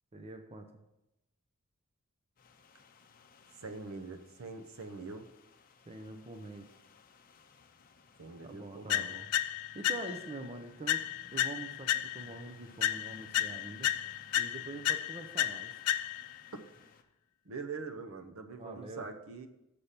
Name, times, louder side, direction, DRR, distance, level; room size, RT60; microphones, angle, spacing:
voice 1, 0.1-0.7 5.9-6.7 8.4-9.3 9.7-11.0 11.3-13.9 14.4-15.7 18.6-19.1, right 2 dB, 25° right, 6 dB, 0.6 m, -44 dB
sound 1, 2.4-17.0, left 4 dB, 40° left, 0.6 m, -60 dB
voice 2, 3.6-5.2 8.2-9.1 17.4-19.5, right 4 dB, 65° right, 6 dB, 0.8 m, -43 dB
sound 2, 8.9-10.4 10.9-12.4 12.8-16.4, left 12 dB, 75° left, 0.3 m, -33 dB
6.8 x 5.7 x 6.6 m, 0.89 s
head